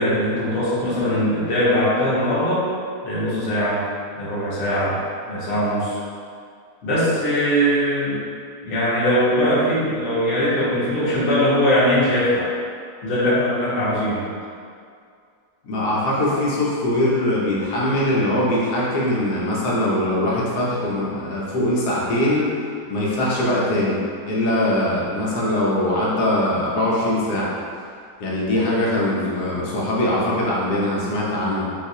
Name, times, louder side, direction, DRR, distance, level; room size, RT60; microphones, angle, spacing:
voice 1, 0.0-2.7 3.0-3.8 4.1-5.0 5.3-6.0 6.8-8.2 8.6-12.5 13.0-14.3, equal, 50° left, -9 dB, 1.1 m, -21 dB
voice 2, 15.6-22.5 22.9-24.0 24.2-27.8 28.2-31.8, left 1 dB, 75° left, -5 dB, 1.2 m, -22 dB
3.9 x 2.3 x 2.7 m, 2.2 s
omnidirectional pair, 1.7 m